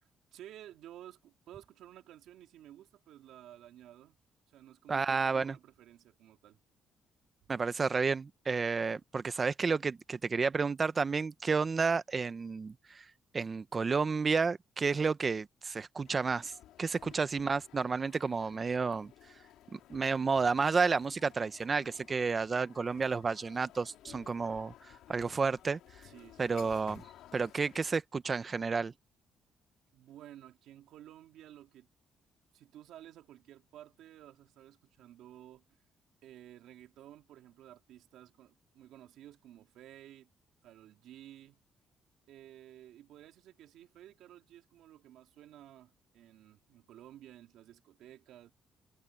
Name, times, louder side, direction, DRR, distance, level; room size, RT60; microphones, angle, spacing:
voice 1, 0.3-4.2 4.5-6.6 26.0-26.5 29.9-31.9 32.5-35.6 36.2-40.3 40.6-41.6 42.3-48.5, right 12 dB, 85° right, 3.4 m, -54 dB
voice 2, 4.9-5.6 7.5-13.0 13.3-16.5 16.8-19.1 19.7-24.7 25.1-25.8 26.4-27.0 27.3-28.9, right 4 dB, 35° right, 1.0 m, -31 dB
sound 1, 16.0-28.0, left 13 dB, 85° left, 5.0 m, -56 dB
cardioid pair, 90°, 0 cm